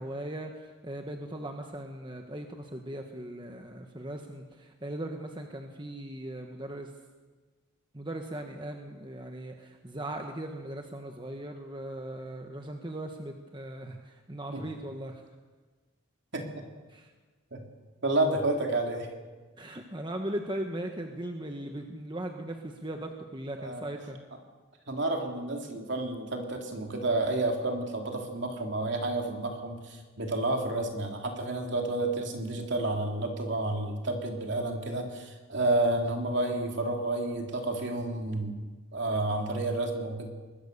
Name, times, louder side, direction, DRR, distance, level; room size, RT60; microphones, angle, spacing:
voice 1, 0.0-6.9 7.9-15.2 16.9-17.1 19.6-24.3, right 1 dB, 20° right, 4 dB, 1.4 m, -38 dB
voice 2, 16.3-16.6 17.5-17.6 18.0-19.1 23.6-23.8 24.9-38.6 38.9-40.3, right 2 dB, 55° right, 2 dB, 3.2 m, -30 dB
24.0 x 21.0 x 6.8 m, 1.3 s
head